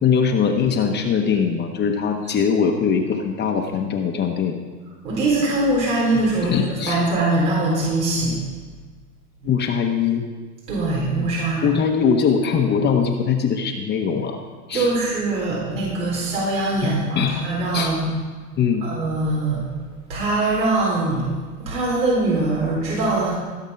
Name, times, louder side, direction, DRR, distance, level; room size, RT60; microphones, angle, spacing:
voice 1, 0.0-4.6 6.4-7.0 9.4-10.3 11.6-14.4 14.7-14.9 16.8-17.4 17.7-17.9 18.6-18.9, left 6 dB, 20° left, 3 dB, 1.0 m, -21 dB
voice 2, 5.0-8.3 10.7-11.6 14.7-18.1 18.8-19.6 20.1-21.2 21.6-23.3, right 2 dB, 80° right, -4 dB, 4.1 m, -22 dB
16.5 x 7.2 x 5.7 m, 1.4 s
hypercardioid pair, 120°, 48 cm